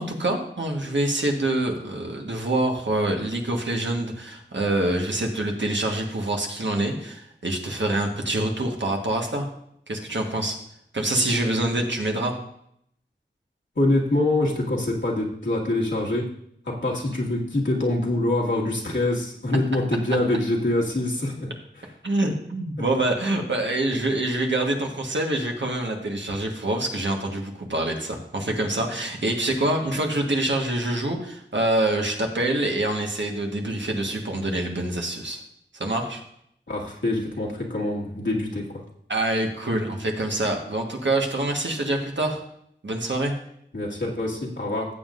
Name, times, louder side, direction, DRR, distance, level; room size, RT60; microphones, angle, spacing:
voice 1, 0.0-9.5 9.9-10.6 10.9-12.3 22.0-35.4 35.7-36.2 39.1-42.4 42.8-43.3, right 1 dB, 70° right, 1 dB, 1.4 m, -26 dB
voice 2, 13.8-16.3 16.7-21.5 36.7-38.8 43.7-44.9, left 1 dB, 75° left, -4 dB, 1.9 m, -25 dB
14.5 x 7.6 x 2.5 m, 0.72 s
wide cardioid pair, 60°, 20 cm